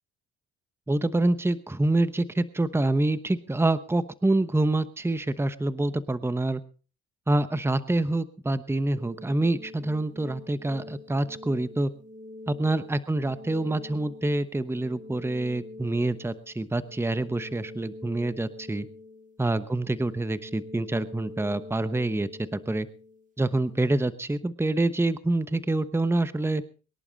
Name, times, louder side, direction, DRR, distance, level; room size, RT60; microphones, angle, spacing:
voice 1, 0.9-6.6 7.3-11.9 12.5-18.9 19.4-22.9 23.4-26.6, right 2 dB, 10° right, 13 dB, 1.0 m, -26 dB
sound 1, 8.9-23.9, left 2 dB, 25° right, 2.7 m, -45 dB
23.5 x 11.0 x 4.0 m, 0.36 s
cardioid pair, 90°, 30 cm